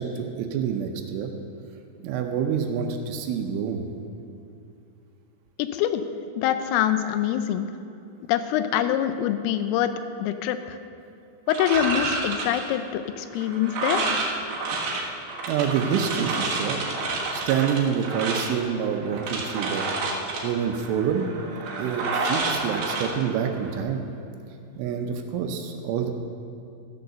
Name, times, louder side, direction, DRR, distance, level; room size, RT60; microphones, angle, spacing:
voice 1, 0.0-1.3 2.0-3.9 15.5-16.8 17.3-19.9 20.4-21.3 21.8-24.0 24.8-26.1, right 7 dB, 80° right, 5 dB, 3.1 m, -27 dB
voice 2, 5.6-6.0 6.4-7.7 8.3-9.9 10.2-10.8 11.5-14.1, left 10 dB, 85° left, 10 dB, 3.2 m, -25 dB
sound 1, 11.5-23.8, right 3 dB, 65° right, 2.4 m, -30 dB
14.5 x 6.6 x 6.7 m, 2.6 s
omnidirectional pair, 5.9 m